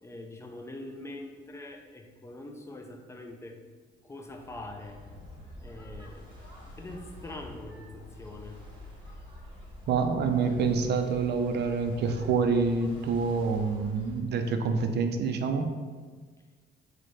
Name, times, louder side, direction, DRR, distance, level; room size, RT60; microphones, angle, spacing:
voice 1, 0.0-3.6 4.0-5.0 5.6-6.3 6.8-8.6, left 2 dB, 15° left, 3 dB, 0.4 m, -43 dB
sound 1, 4.3-14.2, equal, 25° right, 0.9 m, -47 dB
voice 2, 9.9-15.7, right 5 dB, 60° right, 6 dB, 0.4 m, -27 dB
4.0 x 2.1 x 3.1 m, 1.5 s
cardioid pair, 90°, 20 cm